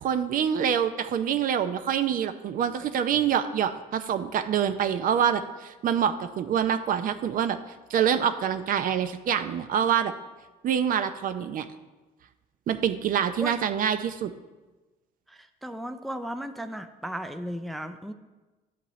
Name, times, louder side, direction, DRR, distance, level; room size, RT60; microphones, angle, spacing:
voice 1, 0.0-7.6 7.9-10.1 10.6-11.7 12.7-14.3, right 8 dB, 55° right, 10 dB, 0.6 m, -26 dB
voice 2, 15.6-18.1, equal, ahead, 8 dB, 0.4 m, -35 dB
11.5 x 8.3 x 3.1 m, 1.2 s
cardioid pair, 110°, 17 cm